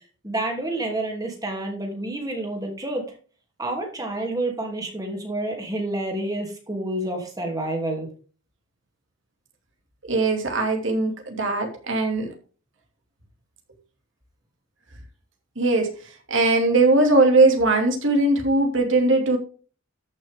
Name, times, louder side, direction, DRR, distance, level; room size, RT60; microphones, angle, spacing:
voice 1, 0.2-3.0 3.6-8.1, right 1 dB, 20° right, 2 dB, 2.9 m, -29 dB
voice 2, 10.1-12.3 15.6-15.9 16.3-19.4, right 2 dB, 70° right, 3 dB, 2.7 m, -20 dB
13.5 x 6.4 x 3.7 m, 0.38 s
head